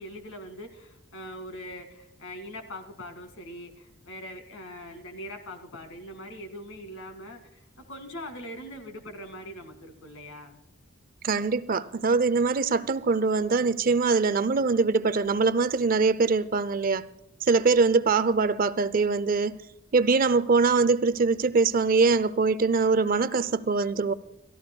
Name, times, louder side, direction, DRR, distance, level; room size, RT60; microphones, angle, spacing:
voice 1, 0.0-10.6 17.7-17.8, equal, 65° left, 2.1 m, -42 dB
voice 2, 11.2-17.0 17.4-19.6 19.9-24.1, right 4 dB, 40° right, 0.4 m, -23 dB
29.0 x 14.0 x 2.2 m
head